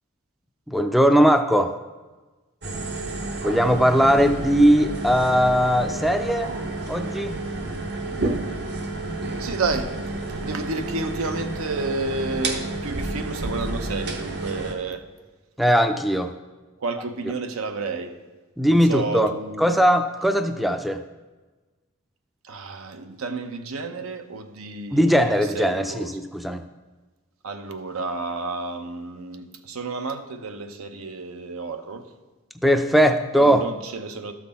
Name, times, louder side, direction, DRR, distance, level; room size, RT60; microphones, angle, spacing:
voice 1, 0.7-1.8 3.4-6.5 6.9-7.4 15.6-16.3 18.6-19.3 19.6-21.0 24.9-26.6 32.6-33.6, equal, ahead, 8 dB, 0.4 m, -19 dB
sound 1, 2.6-14.7, right 2 dB, 50° right, 0.9 m, -30 dB
voice 2, 9.4-15.1 16.8-18.1 18.7-19.8 22.4-26.2 27.4-32.1 33.4-34.3, right 3 dB, 75° right, 8 dB, 0.7 m, -31 dB
12.5 x 5.9 x 4.1 m, 1.2 s
head